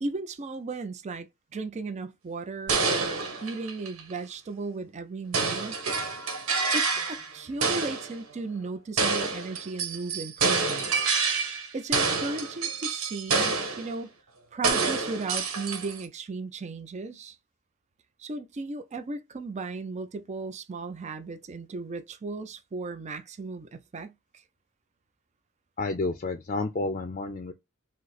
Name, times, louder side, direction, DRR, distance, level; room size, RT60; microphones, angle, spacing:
voice 1, 0.0-1.3 1.5-5.8 6.7-11.1 11.7-14.1 14.5-17.4 18.2-24.1, right 3 dB, 35° right, 0.4 m, -36 dB
sound 1, 2.7-4.1 5.3-7.3 7.6-8.1 9.0-11.7 11.9-13.9 14.6-16.1, right 4 dB, 80° right, 1.2 m, -27 dB
voice 2, 25.8-27.5, left 3 dB, 35° left, 0.5 m, -30 dB
5.1 x 2.0 x 4.0 m
head